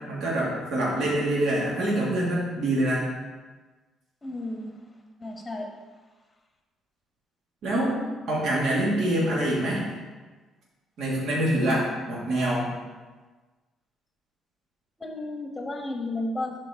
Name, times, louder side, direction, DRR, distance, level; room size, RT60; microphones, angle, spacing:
voice 1, 0.1-3.1 7.6-8.0 8.3-9.8 11.0-12.7, right 1 dB, 65° right, -5 dB, 2.0 m, -25 dB
voice 2, 4.2-4.7 5.2-5.7 7.7-8.2 15.0-16.6, left 2 dB, 15° left, 2 dB, 1.2 m, -33 dB
11.0 x 4.5 x 3.6 m, 1.3 s
cardioid pair, 130°, 0 cm